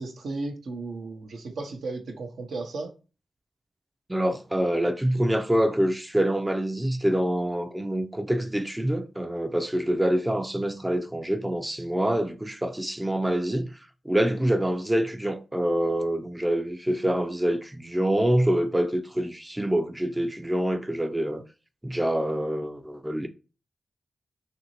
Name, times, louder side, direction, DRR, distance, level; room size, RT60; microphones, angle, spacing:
voice 1, 0.0-2.9, right 3 dB, 80° right, 0.6 m, -34 dB
voice 2, 4.1-13.8 14.1-21.4 21.8-23.3, right 1 dB, 15° right, 0.4 m, -26 dB
2.9 x 2.6 x 2.8 m
cardioid pair, 45°, 0 cm